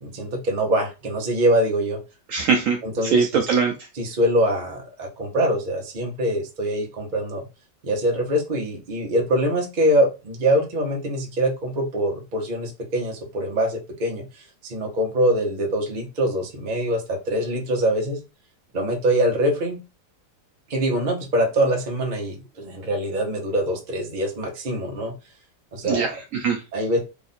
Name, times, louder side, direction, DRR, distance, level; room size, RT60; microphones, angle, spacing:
voice 1, 0.0-2.0 2.8-3.4 3.9-7.4 7.8-14.2 14.6-18.2 18.7-19.8 20.7-25.1 25.7-26.1 26.7-27.0, right 1 dB, 35° right, 1 dB, 0.9 m, -24 dB
voice 2, 2.3-3.7 25.8-26.6, right 5 dB, 80° right, 3 dB, 0.7 m, -22 dB
3.4 x 2.5 x 4.1 m, 0.28 s
omnidirectional pair, 1.9 m